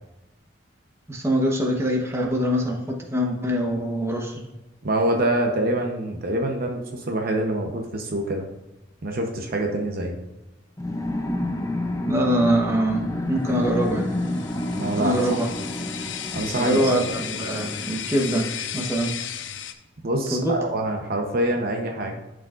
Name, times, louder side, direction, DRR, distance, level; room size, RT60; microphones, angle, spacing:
voice 1, 1.1-4.5 12.1-14.2 15.0-15.5 15.8-15.9 16.6-19.1 20.3-20.5, equal, 15° right, 0 dB, 1.0 m, -24 dB
voice 2, 4.8-8.4 9.0-10.2 14.7-15.2 16.3-17.1 20.0-22.1, right 1 dB, 50° right, 3 dB, 0.8 m, -25 dB
sound 1, 10.8-18.9, left 1 dB, 15° left, 0.6 m, -30 dB
sound 2, 13.8-19.7, left 9 dB, 70° left, 0.6 m, -34 dB
11.5 x 5.0 x 2.5 m, 1.0 s
head